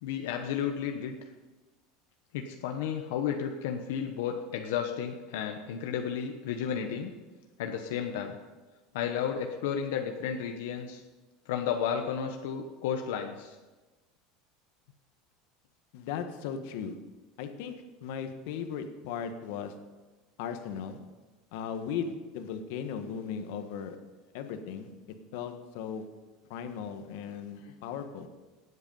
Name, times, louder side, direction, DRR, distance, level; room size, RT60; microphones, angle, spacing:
voice 1, 0.0-1.1 2.3-7.1 7.6-8.4 8.9-11.0 11.5-13.6, left 8 dB, 85° left, 4 dB, 1.1 m, -32 dB
voice 2, 15.9-16.9 17.4-17.7 18.0-19.7 20.4-21.0 21.5-24.0 24.3-24.9 25.3-26.0 26.5-28.3, left 7 dB, 65° left, 7 dB, 1.4 m, -37 dB
17.5 x 8.2 x 5.5 m, 1.2 s
cardioid pair, 160°, 0 cm